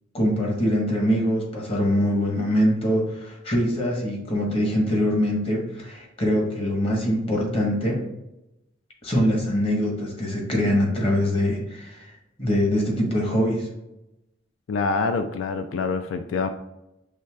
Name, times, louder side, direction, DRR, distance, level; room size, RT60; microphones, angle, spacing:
voice 1, 0.1-8.0 9.0-12.1 12.4-13.7, equal, 30° left, -1 dB, 1.0 m, -23 dB
voice 2, 14.7-16.5, left 4 dB, 90° left, 8 dB, 0.3 m, -25 dB
6.6 x 3.2 x 2.3 m, 0.91 s
head